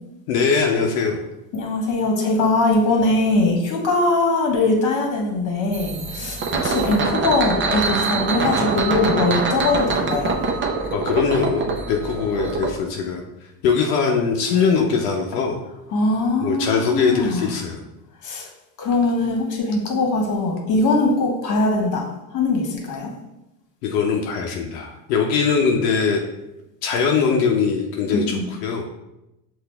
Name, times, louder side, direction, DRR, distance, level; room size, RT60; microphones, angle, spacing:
voice 1, 0.3-1.2 10.9-13.2 13.6-15.6 16.4-17.8 23.8-26.2 26.8-28.8, left 5 dB, 85° left, 1 dB, 0.7 m, -21 dB
voice 2, 1.5-10.4 15.9-17.5 18.2-18.5 18.8-22.0 22.3-23.1 28.1-28.4, left 2 dB, 40° left, 1 dB, 1.5 m, -21 dB
sound 1, 5.7-12.7, right 4 dB, 25° right, 0.6 m, -24 dB
5.9 x 2.6 x 3.3 m, 0.93 s
supercardioid pair, 105°, 45 cm